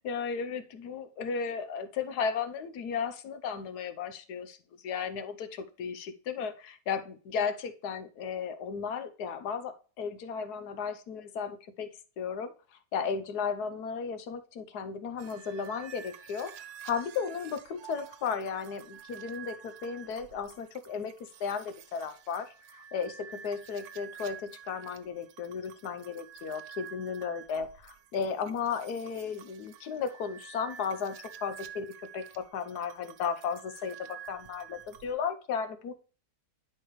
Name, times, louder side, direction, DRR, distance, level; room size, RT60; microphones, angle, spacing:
voice 1, 0.0-4.6 4.8-11.9 12.2-16.5 16.8-31.9 32.1-35.9, left 6 dB, 80° left, 10 dB, 1.4 m, -35 dB
sound 1, 15.2-35.1, right 8 dB, 80° right, 1.3 m, -49 dB
10.5 x 4.7 x 3.1 m, 0.38 s
omnidirectional pair, 1.6 m